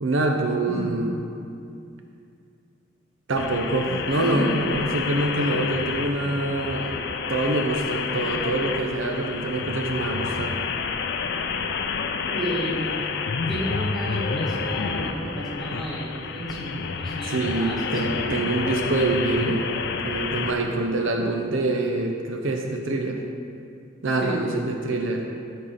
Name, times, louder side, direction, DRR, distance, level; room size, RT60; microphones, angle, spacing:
voice 1, 0.0-1.2 3.3-10.5 17.3-19.7 20.0-23.2 24.0-25.2, right 2 dB, 65° right, 2 dB, 0.7 m, -25 dB
voice 2, 0.7-1.1 4.1-4.6 12.2-13.0 13.5-18.1 24.2-24.4, equal, ahead, -9 dB, 2.0 m, -32 dB
sound 1, 3.4-20.5, left 5 dB, 55° left, 0.5 m, -29 dB
12.5 x 4.3 x 5.0 m, 2.4 s
head